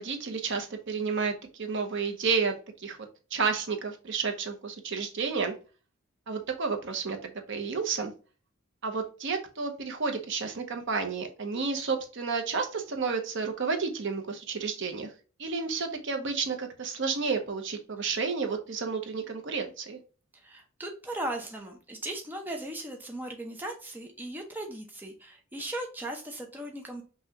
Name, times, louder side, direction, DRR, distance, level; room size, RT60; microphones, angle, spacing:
voice 1, 0.0-3.0 3.3-5.5 6.3-8.1 8.8-15.1 15.4-20.0, right 5 dB, 60° right, 5 dB, 0.8 m, -31 dB
voice 2, 20.3-27.0, right 1 dB, 10° right, 2 dB, 0.5 m, -38 dB
5.5 x 2.4 x 2.9 m, 0.36 s
head